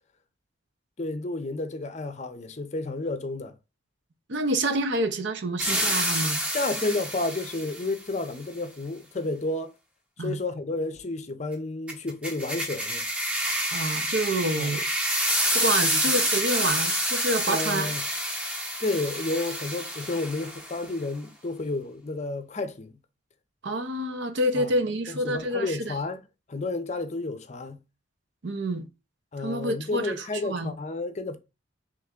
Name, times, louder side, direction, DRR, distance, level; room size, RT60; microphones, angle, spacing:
voice 1, 1.0-3.5 6.5-9.7 10.2-13.1 14.6-14.8 15.8-16.0 17.5-18.0 18.8-23.0 24.5-24.7 25.1-26.2 26.5-27.8 29.3-31.4, left 2 dB, 35° left, 0.5 m, -31 dB
voice 2, 4.3-6.4 10.2-10.3 13.7-14.8 15.5-17.9 23.6-25.9 28.4-28.8 29.4-30.7, right 1 dB, 65° right, 0.6 m, -28 dB
sound 1, 5.6-7.9 11.9-20.8, equal, 5° right, 0.8 m, -28 dB
3.4 x 3.1 x 3.6 m
head